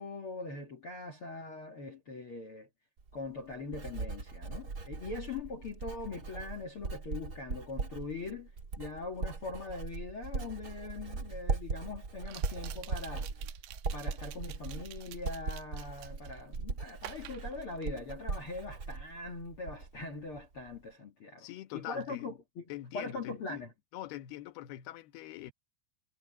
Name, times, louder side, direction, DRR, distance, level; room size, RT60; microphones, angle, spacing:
voice 1, 0.0-2.7 3.1-8.5 8.8-13.3 13.9-21.5 21.7-22.6 22.9-23.7, left 3 dB, 50° left, 1.6 m, -42 dB
Writing, 3.0-20.0 20.3-20.8, right 4 dB, 45° right, 1.2 m, -39 dB
sound 1, 10.5-10.6 12.2-16.4 17.0-18.3 18.6-18.9, right 14 dB, 75° right, 3.1 m, -50 dB
voice 2, 21.4-22.3 22.7-23.6 23.9-25.5, left 13 dB, 70° left, 2.8 m, -43 dB
omnidirectional pair, 5.4 m